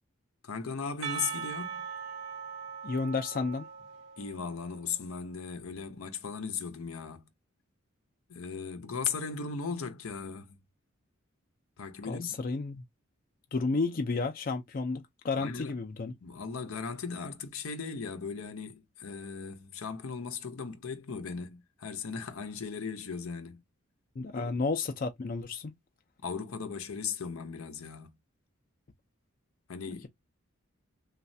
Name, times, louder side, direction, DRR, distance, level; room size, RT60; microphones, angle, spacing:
voice 1, 0.4-1.9 4.2-7.3 8.3-10.6 11.8-12.4 15.4-15.8 16.2-23.6 24.3-24.6 26.2-28.2 29.7-30.1, left 5 dB, 80° left, 0.7 m, -37 dB
Percussion, 1.0-4.9, right 7 dB, 60° right, 0.7 m, -40 dB
voice 2, 2.8-3.7 12.1-12.8 13.5-16.1 24.2-25.7 29.9-30.1, left 4 dB, 45° left, 0.4 m, -32 dB
3.2 x 2.3 x 2.6 m
head